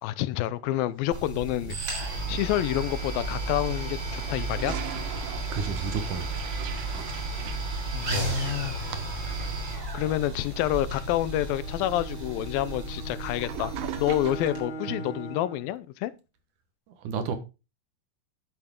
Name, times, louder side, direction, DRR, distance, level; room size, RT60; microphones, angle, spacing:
voice 1, 0.0-2.0 2.3-4.8 7.9-8.8 9.9-13.7 14.0-16.1, left 14 dB, 85° left, 2.5 m, -28 dB
sound 1, 1.1-14.6, right 2 dB, 30° right, 4.0 m, -33 dB
Toilet flush, 4.0-14.7, right 11 dB, 80° right, 2.7 m, -43 dB
voice 2, 5.5-6.4 6.8-7.6 14.9-15.1 17.0-17.3, right 6 dB, 65° right, 2.7 m, -33 dB
Bowed string instrument, 10.9-15.7, right 3 dB, 60° left, 3.6 m, -41 dB
11.0 x 8.8 x 3.8 m
omnidirectional pair, 4.1 m